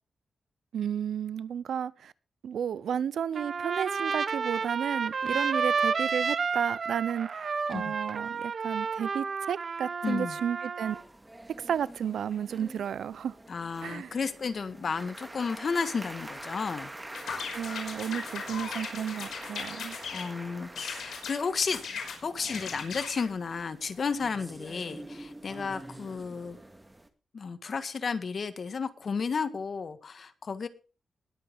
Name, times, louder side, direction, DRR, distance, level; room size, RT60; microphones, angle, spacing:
voice 1, 0.7-2.1 2.4-11.0 11.6-13.3 13.8-14.1 17.5-20.0, right 8 dB, 85° right, 0.6 m, -33 dB
Trumpet, 3.3-11.0, right 5 dB, 55° right, 0.9 m, -31 dB
voice 2, 10.0-10.4 13.5-16.9 20.1-21.8 22.2-26.6 27.3-30.7, left 5 dB, 55° left, 1.6 m, -33 dB
sound 1, 10.8-27.1, right 1 dB, 15° right, 2.1 m, -45 dB
sound 2, 17.1-20.3 20.7-21.4 21.7-23.3, left 6 dB, 85° left, 5.4 m, -38 dB
21.0 x 8.0 x 3.7 m
cardioid pair, 85°, 0 cm